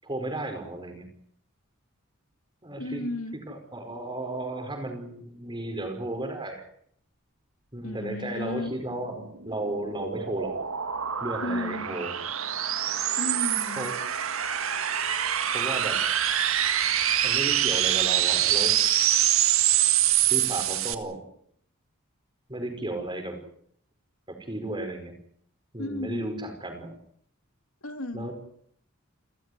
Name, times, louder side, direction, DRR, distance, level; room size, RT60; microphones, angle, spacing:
voice 1, 0.0-1.1 2.6-3.1 3.5-6.7 7.7-10.6 11.2-12.1 13.8-13.9 15.5-16.0 17.2-18.8 20.3-21.2 22.5-23.4 24.3-25.1 25.7-27.0 28.1-28.3, right 1 dB, 20° right, 5 dB, 5.3 m, -34 dB
voice 2, 2.8-3.4 7.8-8.7 11.4-12.0 13.2-13.9 25.8-26.4 27.8-28.3, left 2 dB, 80° left, 8 dB, 2.5 m, -34 dB
sound 1, 9.1-20.9, right 11 dB, 75° right, 1.8 m, -25 dB
29.0 x 14.0 x 9.6 m, 0.67 s
head